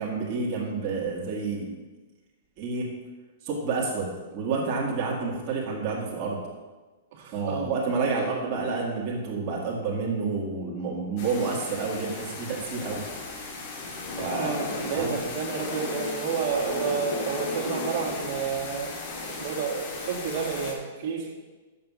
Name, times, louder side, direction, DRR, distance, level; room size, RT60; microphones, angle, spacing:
voice 1, 0.0-1.7 2.6-2.9 3.4-6.4 7.3-13.0 14.2-14.6 14.9-15.2, right 4 dB, 35° right, -4 dB, 2.1 m, -29 dB
voice 2, 7.1-7.7 8.1-8.3 14.4-18.9 19.3-21.3, right 6 dB, 55° right, -1 dB, 2.2 m, -30 dB
sound 1, 11.2-20.7, left 3 dB, 45° left, 1.9 m, -35 dB
6.9 x 5.8 x 7.0 m, 1.2 s
hypercardioid pair, 150°, 0 cm